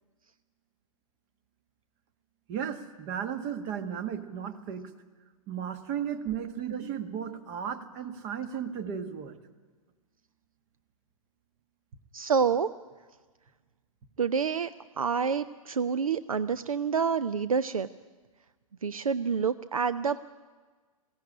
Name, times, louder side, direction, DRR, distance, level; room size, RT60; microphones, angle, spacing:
voice 1, 2.5-4.9 5.5-9.4, right 8 dB, 35° right, 11 dB, 1.7 m, -35 dB
voice 2, 12.1-12.7 14.2-14.7 15.0-17.9 18.8-20.3, right 6 dB, 70° right, 14 dB, 0.6 m, -28 dB
21.0 x 16.5 x 10.0 m, 1.4 s
figure-of-eight pair, 110°, 18 cm